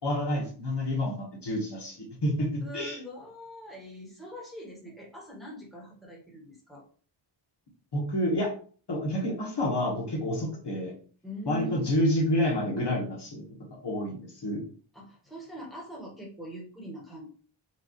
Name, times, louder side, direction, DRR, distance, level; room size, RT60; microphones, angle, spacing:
voice 1, 0.0-3.0 7.9-8.5 8.9-10.9 11.5-13.4 13.7-14.6, left 1 dB, 55° left, -2 dB, 1.6 m, -29 dB
voice 2, 2.6-6.8 11.2-12.0 14.9-17.3, right 1 dB, ahead, -4 dB, 1.6 m, -42 dB
5.0 x 2.7 x 3.2 m, 0.43 s
wide cardioid pair, 115°, 48 cm